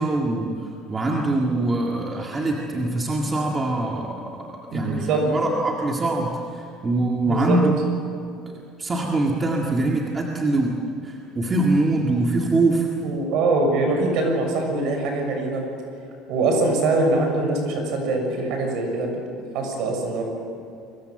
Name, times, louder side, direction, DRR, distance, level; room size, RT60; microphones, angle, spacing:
voice 1, 0.0-7.7 8.8-10.8 11.0-13.1, right 2 dB, 15° right, -1 dB, 2.0 m, -23 dB
voice 2, 4.7-5.2 7.3-7.6 13.0-15.6 16.3-19.1 19.5-20.2, right 2 dB, 50° right, 3 dB, 7.0 m, -23 dB
30.0 x 22.5 x 7.9 m, 2.5 s
cardioid pair, 175°, 0 cm